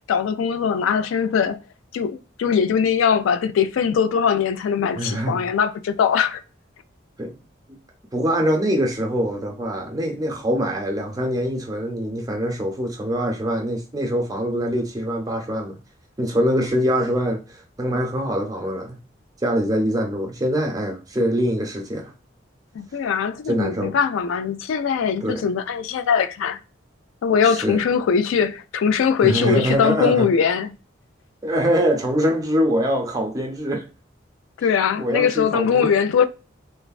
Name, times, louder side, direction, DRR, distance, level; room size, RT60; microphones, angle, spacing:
voice 1, 0.1-1.6 1.9-6.4 22.7-26.6 27.2-30.7 34.6-36.3, left 7 dB, 85° left, 0.3 m, -21 dB
voice 2, 5.0-5.4 7.2-7.4 8.1-15.8 16.2-19.0 19.4-22.1 23.5-24.0 25.2-25.5 27.4-27.8 29.2-30.3 31.4-33.9 35.0-35.9, equal, 20° right, 0.6 m, -23 dB
3.2 x 2.1 x 2.3 m
head